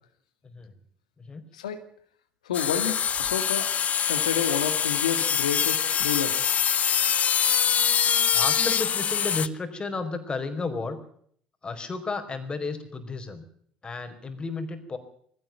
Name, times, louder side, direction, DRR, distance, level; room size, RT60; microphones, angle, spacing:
voice 1, 2.4-3.7 4.1-6.4, left 8 dB, 90° left, 8 dB, 2.0 m, -30 dB
sound 1, 2.5-9.5, left 8 dB, 45° left, 0.9 m, -24 dB
voice 2, 8.3-11.0 11.6-13.4 13.8-15.0, left 3 dB, 25° left, 7 dB, 4.7 m, -33 dB
20.0 x 16.5 x 9.1 m, 0.63 s
hypercardioid pair, 70°, 4 cm